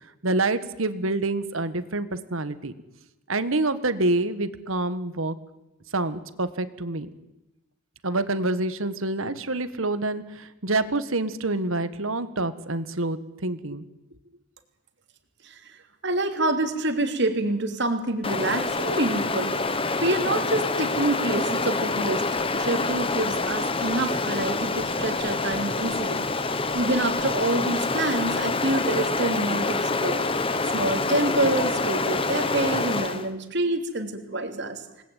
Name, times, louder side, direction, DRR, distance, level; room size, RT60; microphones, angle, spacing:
voice 1, 0.2-2.7 3.3-5.3 5.9-7.1 8.0-13.8, right 2 dB, 70° right, 13 dB, 1.6 m, -27 dB
voice 2, 16.0-19.6 20.0-22.3 22.5-26.3 26.7-30.3 30.7-35.0, right 2 dB, 55° right, 6 dB, 3.0 m, -27 dB
Stream, 18.2-33.3, left 3 dB, 25° left, 1.2 m, -26 dB
27.0 x 19.5 x 9.4 m, 0.98 s
head